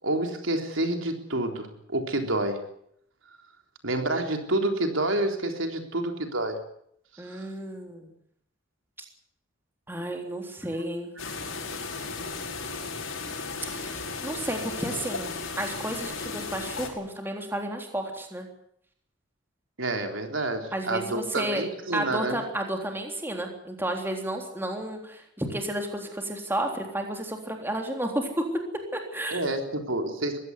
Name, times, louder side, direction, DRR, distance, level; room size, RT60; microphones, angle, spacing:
voice 1, 0.0-2.7 3.8-6.6 7.3-7.5 19.8-22.4 29.3-30.4, right 1 dB, 75° right, 5 dB, 3.8 m, -28 dB
voice 2, 7.2-8.1 9.9-11.1 13.7-18.5 20.7-21.6 21.9-28.4 28.9-29.5, right 1 dB, 10° right, 3 dB, 3.6 m, -32 dB
sound 1, 11.2-16.9, left 4 dB, 80° left, 5.4 m, -35 dB
22.5 x 16.5 x 9.6 m, 0.70 s
head